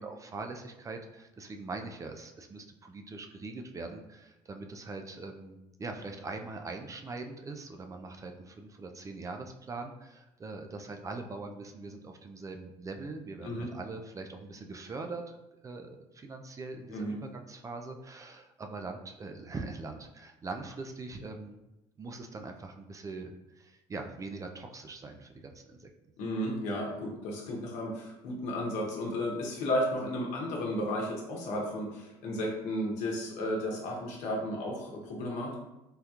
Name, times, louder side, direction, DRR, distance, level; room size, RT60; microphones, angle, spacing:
voice 1, 0.0-15.4 15.6-21.6 22.0-25.9, right 3 dB, 25° right, 4 dB, 0.4 m, -42 dB
voice 2, 26.2-35.5, left 1 dB, 75° left, -1 dB, 0.9 m, -33 dB
3.5 x 2.3 x 2.8 m, 0.95 s
supercardioid pair, 80°, 12 cm